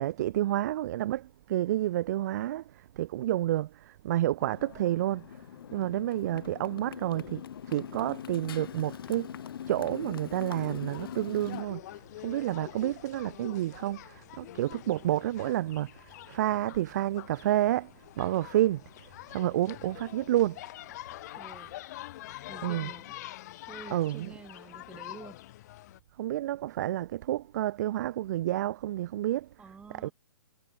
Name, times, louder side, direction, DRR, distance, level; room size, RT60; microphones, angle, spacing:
voice 1, 0.0-5.4 5.7-9.4 9.7-17.9 18.2-20.6 22.6-22.9 23.9-24.3 26.2-29.5 29.9-30.1, right 14 dB, 40° right, 0.4 m, -30 dB
Motorcycle, 4.4-11.6, left 9 dB, 55° left, 0.6 m, -42 dB
sound 1, 10.9-26.0, left 16 dB, 40° left, 1.0 m, -45 dB
voice 2, 21.4-21.7 22.5-23.1 23.7-25.4 29.6-30.1, right 5 dB, 10° right, 3.4 m, -48 dB
figure-of-eight pair, 135°, 14 cm